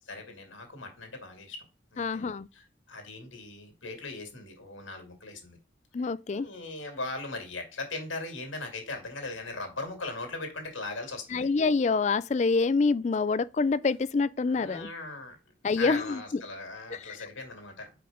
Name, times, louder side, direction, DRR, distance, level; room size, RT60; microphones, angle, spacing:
voice 1, 0.0-1.7 1.9-5.6 6.0-11.5 14.5-15.4 15.8-18.0, left 3 dB, 85° left, 2.3 m, -39 dB
voice 2, 2.0-2.5 5.9-6.5 11.3-14.9 15.6-16.2 16.9-17.2, left 4 dB, 35° left, 0.3 m, -26 dB
5.0 x 4.9 x 5.0 m
head